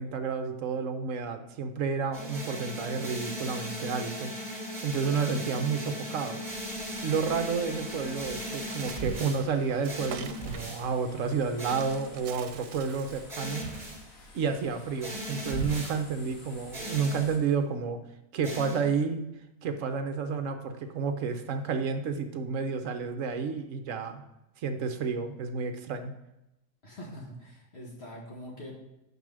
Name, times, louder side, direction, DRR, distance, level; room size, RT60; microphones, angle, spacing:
voice 1, 0.0-4.3 4.8-6.4 7.0-13.7 14.3-18.0 18.3-19.3 19.6-24.2 24.6-26.1, right 5 dB, 60° right, 7 dB, 1.1 m, -30 dB
sound 1, 2.1-9.4 9.9-10.9 11.6-12.1 13.3-14.0 15.0-16.0 16.7-17.3 18.4-19.0, equal, 25° right, 1.9 m, -37 dB
sound 2, 6.5-17.4, left 2 dB, 65° left, 1.7 m, -52 dB
Bird, 8.2-13.4, right 9 dB, 90° right, 1.1 m, -47 dB
voice 2, 26.8-28.8, equal, 45° left, -2 dB, 1.6 m, -43 dB
5.4 x 5.4 x 6.2 m, 0.89 s
omnidirectional pair, 1.6 m